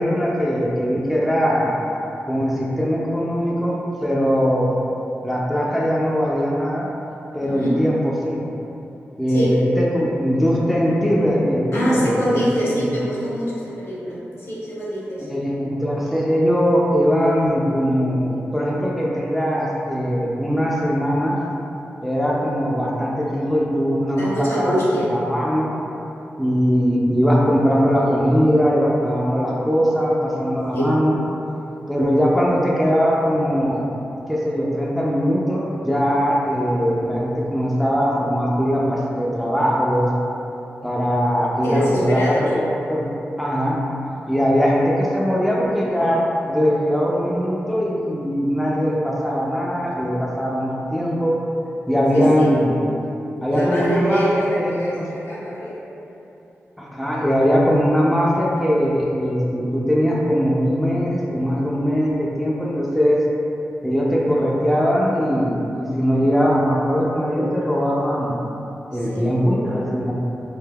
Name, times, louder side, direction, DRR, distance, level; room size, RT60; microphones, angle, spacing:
voice 1, 0.0-1.7 2.2-4.7 5.2-6.9 7.3-8.4 9.2-12.4 12.8-12.9 15.3-21.4 22.0-25.8 26.4-31.2 31.9-33.8 34.3-40.1 40.8-43.1 43.4-43.8 44.3-51.4 51.9-52.8 53.4-55.0 56.8-63.2 63.8-68.4 68.9-70.1, equal, ahead, -5 dB, 0.3 m, -20 dB
voice 2, 7.4-7.8 9.3-9.5 11.7-15.3 24.1-25.1 30.7-30.9 41.6-42.5 52.1-52.5 53.5-55.8 68.9-69.3, equal, 70° left, -8 dB, 0.8 m, -24 dB
3.3 x 2.6 x 2.2 m, 2.9 s
wide cardioid pair, 120°, 5 cm